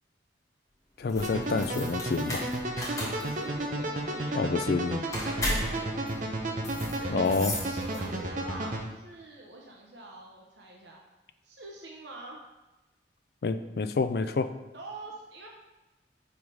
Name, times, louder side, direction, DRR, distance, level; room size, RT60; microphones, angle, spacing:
voice 1, 1.0-2.4 4.3-5.0 7.1-7.5 13.4-14.5, left 4 dB, 55° left, 11 dB, 0.4 m, -28 dB
sound 1, 1.0-8.3, left 1 dB, 20° left, 1.3 m, -36 dB
sound 2, 1.2-8.8, right 1 dB, 45° right, 0.7 m, -33 dB
voice 2, 2.8-4.7 5.2-7.3 7.6-11.0 11.4-12.4 14.7-15.5, right 2 dB, 75° right, -1 dB, 0.8 m, -45 dB
5.4 x 4.7 x 4.8 m, 1.1 s
head